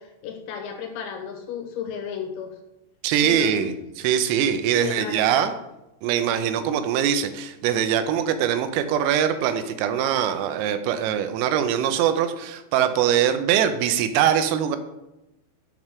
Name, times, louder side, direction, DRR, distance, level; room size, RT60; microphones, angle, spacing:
voice 1, 0.0-2.6 3.2-3.7 4.7-5.5, left 8 dB, 90° left, 4 dB, 3.9 m, -34 dB
voice 2, 3.0-5.5 6.0-14.8, right 9 dB, 85° right, 9 dB, 3.3 m, -22 dB
9.6 x 3.6 x 5.9 m, 0.94 s
omnidirectional pair, 6.0 m